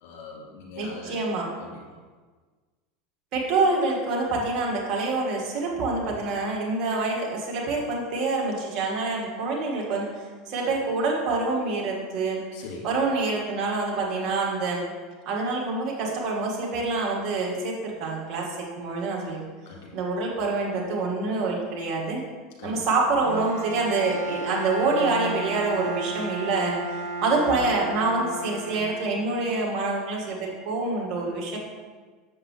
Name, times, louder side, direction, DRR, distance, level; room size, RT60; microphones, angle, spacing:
voice 1, 0.0-1.2 1.6-2.0 12.5-12.9 19.7-19.9 22.6-22.8, left 4 dB, 60° left, -3 dB, 2.3 m, -41 dB
voice 2, 0.8-1.5 3.3-10.1 10.5-12.4 12.8-14.8 15.3-19.4 19.9-22.2 22.6-31.6, right 3 dB, 50° right, -2 dB, 1.9 m, -26 dB
Bowed string instrument, 23.2-29.4, right 2 dB, 75° right, 1.4 m, -33 dB
7.2 x 6.8 x 3.3 m, 1.4 s
figure-of-eight pair, 80°, 0 cm